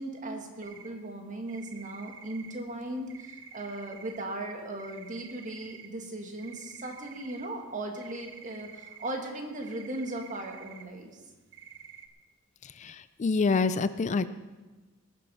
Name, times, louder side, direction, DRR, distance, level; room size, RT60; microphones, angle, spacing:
voice 1, 0.0-11.2, right 1 dB, 40° right, 3 dB, 1.8 m, -38 dB
sound 1, 0.6-1.0 1.5-4.3 4.6-6.0 6.4-10.9 11.3-12.1, right 8 dB, 65° right, 1.0 m, -49 dB
voice 2, 12.6-14.3, left 4 dB, 35° left, 14 dB, 0.4 m, -27 dB
19.5 x 7.4 x 5.5 m, 1.2 s
head